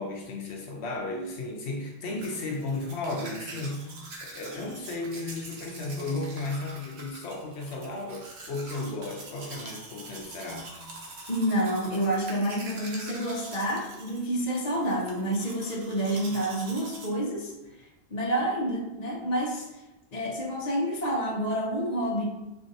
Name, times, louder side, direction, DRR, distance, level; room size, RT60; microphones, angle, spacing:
voice 1, 0.0-3.9 4.2-10.7, left 2 dB, 75° left, 1 dB, 0.9 m, -34 dB
Domestic sounds home sounds, 2.2-17.1, right 2 dB, 70° right, 1.1 m, -44 dB
voice 2, 11.3-19.8 20.1-22.2, right 1 dB, 40° left, -2 dB, 0.9 m, -29 dB
4.7 x 3.8 x 2.7 m, 1.0 s
omnidirectional pair, 1.1 m